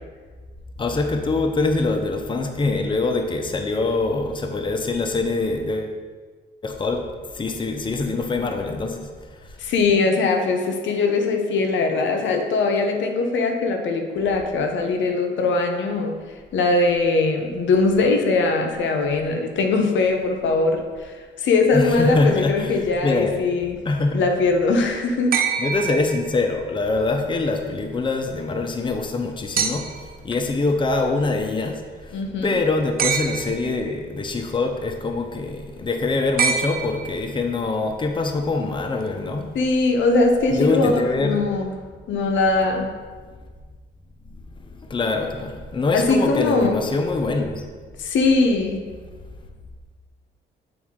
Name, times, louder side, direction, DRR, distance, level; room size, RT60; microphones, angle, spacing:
voice 1, 0.8-5.9 6.6-7.0 7.3-9.1 9.4-9.6 21.7-23.4 23.8-24.2 25.6-29.8 30.2-39.5 40.5-41.5 44.8-47.6, left 3 dB, 25° left, 4 dB, 0.7 m, -24 dB
voice 2, 9.6-16.1 16.5-23.8 24.1-25.4 32.1-32.6 39.5-41.7 42.1-42.9 45.9-46.7 48.0-48.9, left 3 dB, 70° left, 4 dB, 0.8 m, -21 dB
sound 1, 25.3-26.7 29.6-30.2 33.0-33.8 36.4-37.4 39.0-39.1, right 6 dB, 50° right, 0.6 m, -25 dB
8.0 x 4.1 x 3.7 m, 1.5 s
cardioid pair, 90°, 20 cm